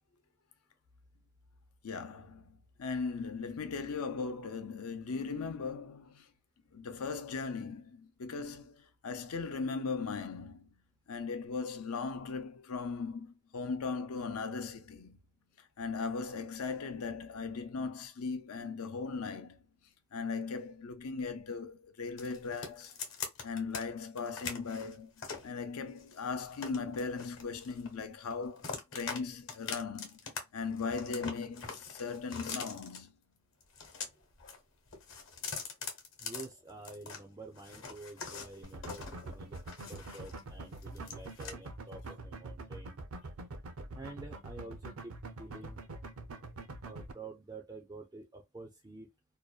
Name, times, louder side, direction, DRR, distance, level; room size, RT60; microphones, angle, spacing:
voice 1, 1.8-6.3 6.7-10.7 11.1-15.2 15.8-19.6 20.1-22.9 23.4-30.2 30.5-33.1, left 4 dB, 85° left, 0.5 m, -38 dB
sound 1, 22.2-23.8 24.2-25.5 26.0-28.0 28.3-29.2 29.5-30.4 30.7-33.0 33.6-34.6 34.9-37.2 37.6-40.4 40.7-41.5, left 5 dB, 60° left, 0.9 m, -43 dB
voice 2, 36.2-39.6 39.9-43.0 43.9-45.8 46.8-49.1, right 2 dB, 15° right, 0.3 m, -49 dB
sound 2, 38.6-47.1, right 2 dB, 75° right, 0.5 m, -44 dB
2.6 x 2.1 x 2.3 m
head